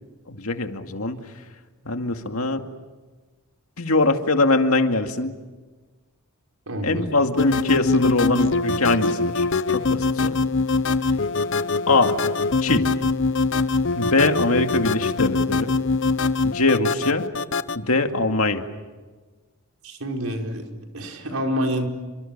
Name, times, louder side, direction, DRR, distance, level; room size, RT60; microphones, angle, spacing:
voice 1, 0.3-1.2 1.9-2.6 3.8-5.3 6.8-9.5 9.7-10.4 11.9-12.2 12.6-12.9 13.9-15.7 16.4-17.3 17.7-18.6, left 2 dB, 70° left, 5 dB, 2.3 m, -22 dB
voice 2, 6.7-7.1 19.8-20.7 20.9-21.9, equal, 75° right, 2 dB, 4.9 m, -27 dB
sound 1, 7.4-17.8, left 3 dB, 55° left, 0.8 m, -23 dB
29.5 x 26.0 x 7.4 m, 1.3 s
head